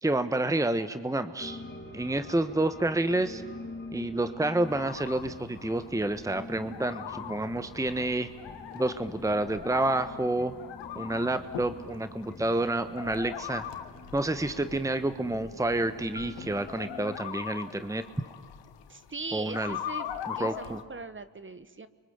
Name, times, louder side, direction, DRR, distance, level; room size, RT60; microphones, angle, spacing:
voice 1, 0.0-1.6 1.9-3.4 3.9-8.3 8.7-10.5 10.9-13.7 14.1-18.0 19.3-19.8 20.3-20.8, right 2 dB, 10° right, 11 dB, 1.2 m, -29 dB
sound 1, 1.4-17.2, left 3 dB, 25° left, 2.6 m, -45 dB
sound 2, 4.6-20.8, left 10 dB, 80° left, 1.7 m, -42 dB
voice 2, 18.9-21.9, right 3 dB, 30° right, 13 dB, 1.5 m, -40 dB
30.0 x 24.5 x 8.0 m, 1.5 s
supercardioid pair, 55°, 42 cm